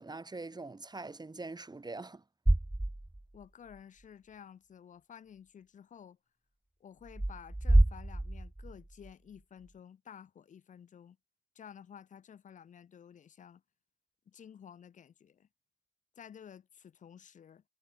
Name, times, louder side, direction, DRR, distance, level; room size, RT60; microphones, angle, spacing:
voice 1, 0.0-2.2, right 3 dB, 35° right, 1.9 m, -43 dB
sound 1, 2.5-3.4 3.8-3.9 7.1-9.1, right 1 dB, 15° right, 0.8 m, -28 dB
voice 2, 3.3-6.2 6.8-11.2 11.5-13.6 14.3-15.5 16.2-17.6, left 8 dB, 85° left, 2.9 m, -53 dB
cardioid pair, 45°, 13 cm